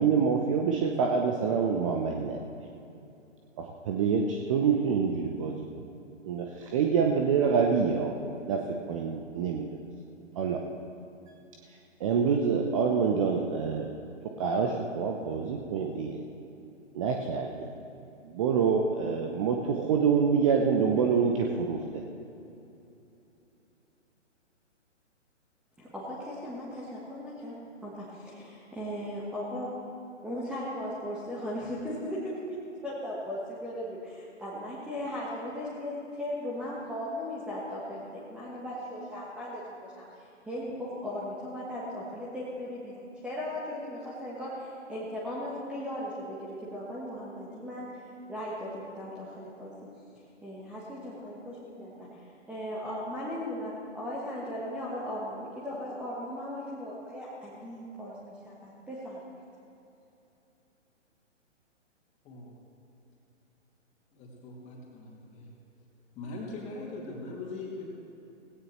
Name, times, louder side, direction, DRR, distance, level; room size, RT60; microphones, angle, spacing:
voice 1, 0.0-2.4 3.6-5.6 6.2-8.1 8.5-9.7 10.4-10.6 12.0-13.9 14.4-16.2 16.9-17.7 18.2-21.8, right 6 dB, 25° right, 2 dB, 0.7 m, -26 dB
voice 2, 25.8-27.5 27.8-29.7 30.2-32.6 32.8-48.0 48.3-49.7 50.4-52.2 52.5-59.2, left 1 dB, 5° right, -7 dB, 1.3 m, -37 dB
voice 3, 64.1-65.5 66.2-67.8, left 2 dB, 20° left, -2 dB, 2.6 m, -41 dB
18.0 x 16.5 x 3.2 m, 2.9 s
figure-of-eight pair, 130°, 37 cm